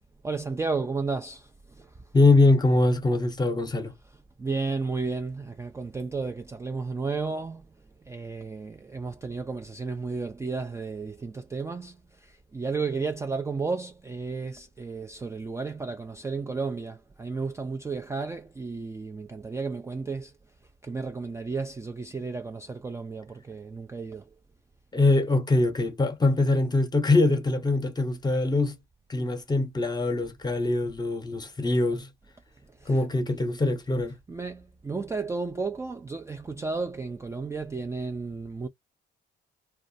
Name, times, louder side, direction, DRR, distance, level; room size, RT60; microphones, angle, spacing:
voice 1, 0.2-1.9 4.4-7.7 8.1-20.3 20.8-24.3 32.8-33.0 34.3-38.7, right 4 dB, 15° right, 0.3 m, -33 dB
voice 2, 2.1-3.9 24.9-28.8 29.1-32.1 32.9-34.2, left 2 dB, 20° left, 0.8 m, -23 dB
2.4 x 2.2 x 2.6 m
cardioid pair, 90°, 20 cm